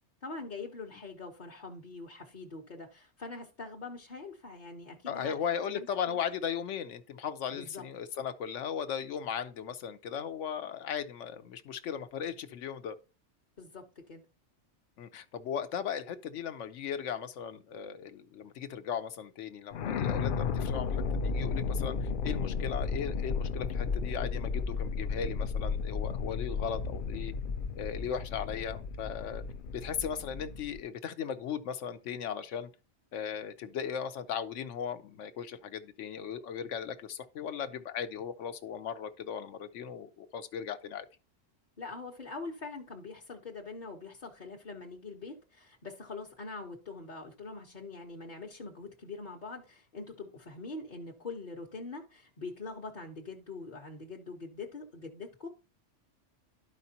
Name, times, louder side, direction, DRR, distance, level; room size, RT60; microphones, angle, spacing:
voice 1, 0.2-5.4 5.7-6.2 7.5-7.8 13.6-14.2 41.8-55.5, left 3 dB, 45° left, 1.0 m, -43 dB
voice 2, 5.1-13.0 15.0-27.3 27.7-29.4 29.7-32.7 33.1-41.1, left 8 dB, 80° left, 1.1 m, -37 dB
sound 1, 19.7-30.8, left 5 dB, 60° left, 0.6 m, -33 dB
12.0 x 5.1 x 2.8 m
omnidirectional pair, 1.2 m